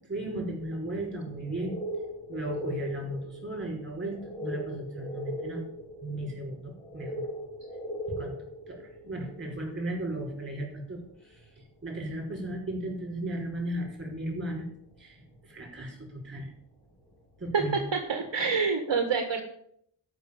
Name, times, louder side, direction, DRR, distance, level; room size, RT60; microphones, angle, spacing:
voice 1, 0.1-1.8 2.3-5.6 6.0-7.3 7.9-8.3 8.7-14.7 15.0-16.5 17.4-17.8, right 1 dB, 20° right, 1 dB, 5.3 m, -36 dB
sound 1, 0.6-16.0 17.1-17.2 17.8-17.9, equal, 10° left, 5.6 m, -40 dB
voice 2, 18.1-19.4, right 5 dB, 55° right, 5 dB, 1.6 m, -26 dB
13.0 x 6.1 x 8.6 m, 0.69 s
wide cardioid pair, 130°, 50 cm